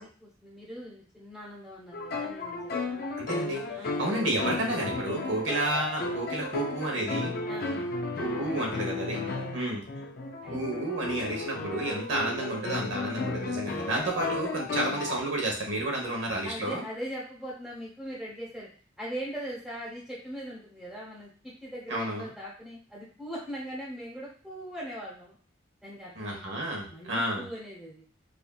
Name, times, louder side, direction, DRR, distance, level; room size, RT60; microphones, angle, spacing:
voice 1, 0.0-3.0 3.8-4.0 7.5-7.7 9.2-9.6 10.4-10.6 16.4-18.7 19.0-25.4 25.8-28.0, equal, ahead, -8 dB, 1.1 m, -40 dB
sound 1, 1.9-15.2, left 3 dB, 55° left, 0.5 m, -34 dB
voice 2, 3.2-7.3 8.2-9.2 9.5-9.8 10.5-16.8 21.9-22.3 26.1-27.4, right 1 dB, 75° right, 0 dB, 1.2 m, -31 dB
4.8 x 2.6 x 2.3 m, 0.42 s
head